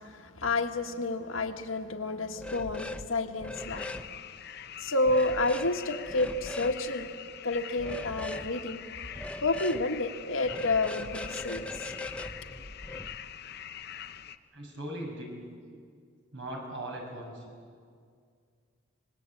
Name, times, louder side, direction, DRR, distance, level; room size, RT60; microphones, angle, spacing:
voice 1, 0.0-3.9 4.8-7.1 7.4-8.8 9.4-11.9, left 2 dB, 80° left, 4 dB, 1.7 m, -30 dB
sound 1, 2.4-3.1 3.4-4.1 5.1-5.7 6.1-6.8 7.8-8.5 9.1-9.8 10.4-13.1, left 1 dB, 5° left, 0.8 m, -40 dB
sound 2, 3.6-14.4, left 9 dB, 50° left, 0.8 m, -44 dB
voice 2, 14.5-15.3 16.3-17.4, right 1 dB, 65° right, 0 dB, 6.7 m, -39 dB
26.0 x 21.0 x 8.6 m, 2.2 s
head